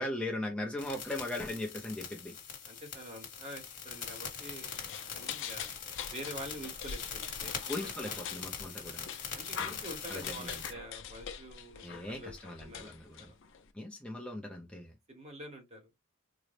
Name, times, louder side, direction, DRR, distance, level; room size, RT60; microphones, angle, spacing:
voice 1, 0.0-2.3 7.7-9.1 10.1-10.2 11.8-13.3 13.7-14.9, left 1 dB, 5° left, 0.5 m, -38 dB
sound 1, 0.8-10.7, left 6 dB, 40° left, 1.2 m, -42 dB
voice 2, 2.7-5.7 6.1-7.5 7.8-8.4 9.4-13.4 15.1-15.9, right 1 dB, 30° right, 0.9 m, -47 dB
sound 2, 4.7-13.7, left 7 dB, 60° left, 0.5 m, -44 dB
3.8 x 2.0 x 3.2 m
head